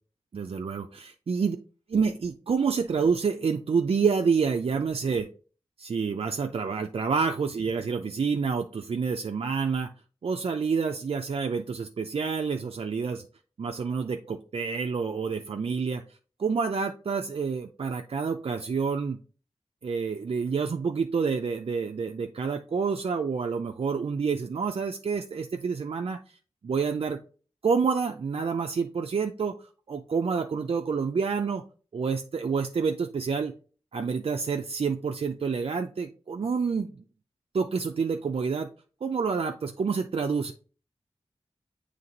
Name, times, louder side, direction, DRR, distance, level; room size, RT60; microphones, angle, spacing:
voice 1, 0.3-1.6 1.9-5.3 5.8-9.9 10.2-13.2 13.6-16.0 16.4-19.2 19.8-26.4 26.6-27.2 27.6-29.5 29.9-31.6 31.9-33.5 33.9-37.0 37.5-38.7 39.0-40.5, right 5 dB, 60° right, 4 dB, 0.5 m, -28 dB
7.6 x 3.2 x 3.9 m, 0.38 s
wide cardioid pair, 80°, 11 cm